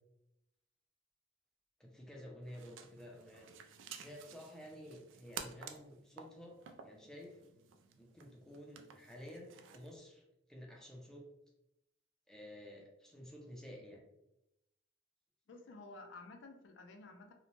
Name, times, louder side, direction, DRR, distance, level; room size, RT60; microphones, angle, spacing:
voice 1, 1.8-3.5 3.9-6.5 6.8-7.4 8.0-10.2 10.5-11.2 12.3-14.0, equal, 5° left, -1 dB, 0.4 m, -52 dB
sound 1, 2.4-10.0, right 7 dB, 85° right, 0.3 m, -53 dB
voice 2, 15.5-17.3, left 3 dB, 70° left, 4 dB, 0.4 m, -53 dB
2.7 x 2.1 x 2.9 m, 0.88 s
head